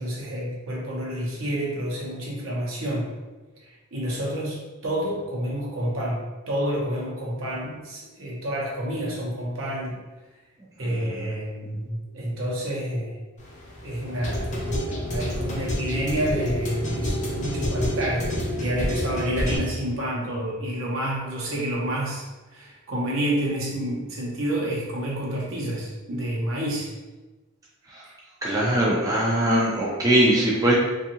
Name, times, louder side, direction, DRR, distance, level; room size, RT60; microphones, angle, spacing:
voice 1, 0.0-3.1 3.9-10.0 10.8-13.2 13.8-22.3 22.5-26.9, right 1 dB, 65° right, -3 dB, 0.8 m, -29 dB
sound 1, 13.4-19.6, equal, 35° left, 0.6 m, -28 dB
voice 2, 28.4-30.7, right 1 dB, 15° right, -5 dB, 0.4 m, -21 dB
2.6 x 2.4 x 2.8 m, 1.2 s
head